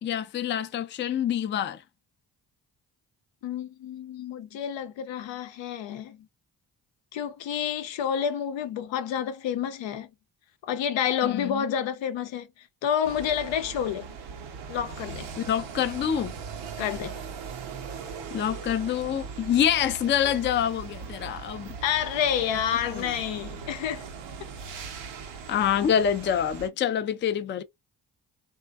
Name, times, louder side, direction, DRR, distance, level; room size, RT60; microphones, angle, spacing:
voice 1, 0.0-1.8 11.2-11.6 15.4-16.4 18.3-21.7 23.0-23.1 25.5-27.6, left 9 dB, 25° left, 0.4 m, -26 dB
voice 2, 3.4-6.2 7.1-10.1 10.7-12.5 12.8-14.1 14.7-15.3 16.8-17.2 21.8-24.1, left 9 dB, 75° left, 0.6 m, -29 dB
sound 1, 13.0-26.7, right 5 dB, 80° right, 0.7 m, -40 dB
2.5 x 2.2 x 2.2 m
supercardioid pair, 45°, 45 cm